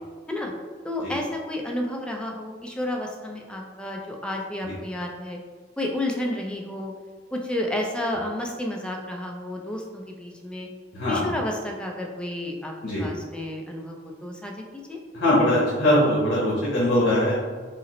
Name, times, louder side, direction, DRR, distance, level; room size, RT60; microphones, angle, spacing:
voice 1, 0.8-5.4 5.8-6.9 7.3-10.7 11.1-12.7 13.0-15.0, left 1 dB, 5° left, 0 dB, 0.4 m, -31 dB
voice 2, 15.1-17.3, left 1 dB, 85° left, -8 dB, 1.1 m, -21 dB
4.9 x 2.0 x 3.0 m, 1.5 s
head